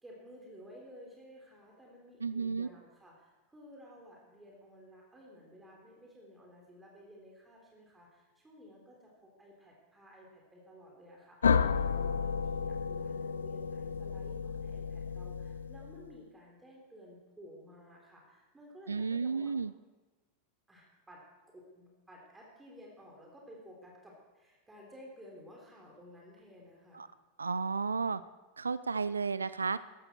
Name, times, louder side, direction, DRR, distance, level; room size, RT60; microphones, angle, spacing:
voice 1, 0.0-19.5 20.7-27.0, equal, 10° right, -2 dB, 3.6 m, -54 dB
voice 2, 2.2-2.7 18.9-19.7 26.9-27.1 27.4-28.2 28.6-29.8, right 5 dB, 75° right, 16 dB, 0.4 m, -32 dB
sound 1, 11.4-16.1, left 6 dB, 70° left, 0.4 m, -32 dB
15.0 x 13.0 x 4.4 m, 1.2 s
figure-of-eight pair, 85°, 0 cm